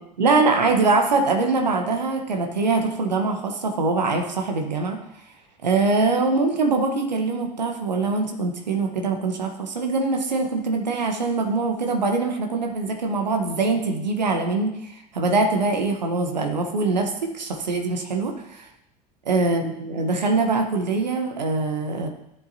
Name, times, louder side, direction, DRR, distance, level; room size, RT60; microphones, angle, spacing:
voice 1, 0.2-5.0 5.6-18.7 19.3-22.1, right 3 dB, 90° right, 3 dB, 1.0 m, -23 dB
12.5 x 7.2 x 2.7 m, 0.81 s
hypercardioid pair, 75°, 21 cm